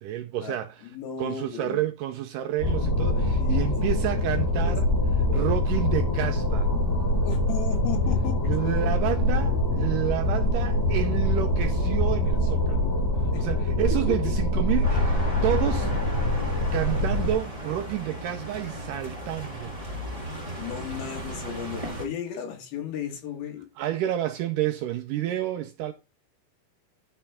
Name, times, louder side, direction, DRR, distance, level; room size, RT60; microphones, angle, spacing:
voice 1, 0.0-0.9 1.2-4.9 5.3-6.7 8.5-12.9 13.2-15.9 16.7-20.0 23.8-25.9, right 12 dB, 80° right, 1.9 m, -30 dB
voice 2, 0.8-1.9 3.4-3.6 4.6-4.7 5.2-5.5 7.2-8.7 13.3-13.4 20.6-23.7, left 8 dB, 80° left, 3.3 m, -35 dB
sound 1, 2.6-17.3, left 1 dB, 60° left, 6.2 m, -24 dB
sound 2, 14.8-22.1, right 1 dB, 30° right, 0.6 m, -36 dB
11.0 x 4.5 x 3.4 m
omnidirectional pair, 4.2 m